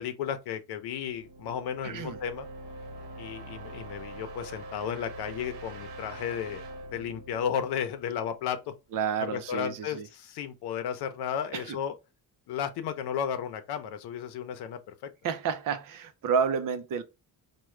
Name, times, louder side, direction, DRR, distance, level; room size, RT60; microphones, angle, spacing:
voice 1, 0.0-2.5 3.2-6.6 6.9-8.7 9.3-11.9 12.5-14.9, left 8 dB, 75° left, 0.7 m, -33 dB
sound 1, 0.8-8.6, right 1 dB, 70° right, 1.1 m, -44 dB
voice 2, 1.8-2.2 8.9-10.1 11.5-11.8 15.2-17.0, right 6 dB, 55° right, 0.6 m, -30 dB
4.7 x 2.3 x 3.2 m
cardioid pair, 155°, 39 cm